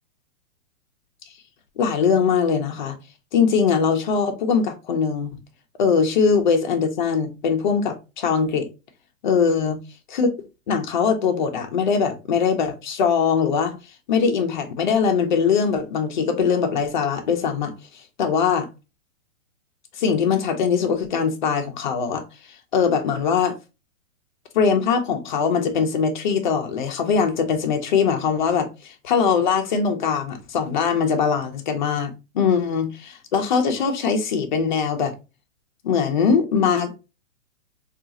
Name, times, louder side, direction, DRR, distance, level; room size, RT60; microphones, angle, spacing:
voice 1, 1.8-3.0 3.3-5.3 5.8-8.7 9.2-9.8 10.1-10.3 10.7-13.7 14.1-17.7 18.2-18.7 20.0-22.2 22.7-23.5 24.5-35.1 35.8-36.9, left 6 dB, 40° left, 0.6 m, -21 dB
3.6 x 2.4 x 2.7 m
hypercardioid pair, 170°, 38 cm